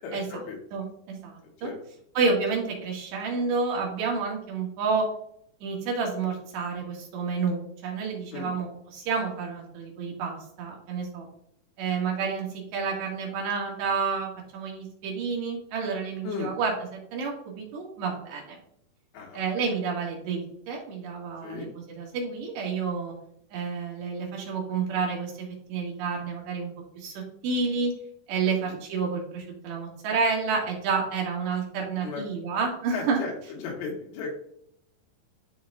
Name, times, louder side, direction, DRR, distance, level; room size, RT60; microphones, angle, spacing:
voice 1, 0.0-0.6 1.6-1.8 8.3-8.5 16.2-16.5 19.1-19.4 21.4-21.7 28.7-28.8 32.0-32.2 32.9-33.3 33.6-34.3, left 5 dB, 85° left, -1 dB, 3.8 m, -35 dB
voice 2, 0.7-1.7 2.2-5.1 5.6-11.3 11.8-18.6 19.3-23.1 23.5-26.7 27.0-27.9 28.3-33.2, right 5 dB, 80° right, -1 dB, 4.0 m, -30 dB
12.0 x 4.7 x 2.4 m, 0.69 s
omnidirectional pair, 4.9 m